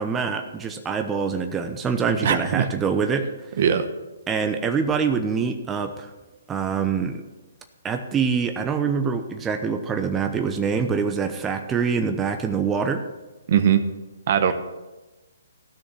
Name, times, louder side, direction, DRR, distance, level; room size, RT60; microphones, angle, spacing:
voice 1, 0.0-3.3 4.3-6.1 6.5-7.2 7.8-13.0, right 6 dB, 15° right, 6 dB, 0.8 m, -25 dB
voice 2, 2.2-2.7 3.6-3.9 13.5-13.9 14.3-14.5, right 8 dB, 50° right, 10 dB, 1.1 m, -20 dB
15.0 x 6.4 x 7.1 m, 1.1 s
figure-of-eight pair, 135°, 0 cm